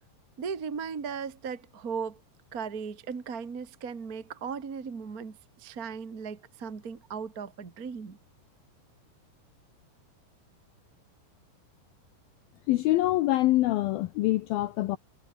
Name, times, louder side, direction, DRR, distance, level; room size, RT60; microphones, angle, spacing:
voice 1, 0.4-2.2 2.5-8.2, right 6 dB, 30° right, 1.6 m, -37 dB
voice 2, 12.7-15.0, left 16 dB, 90° left, 2.1 m, -25 dB
omnidirectional pair, 5.2 m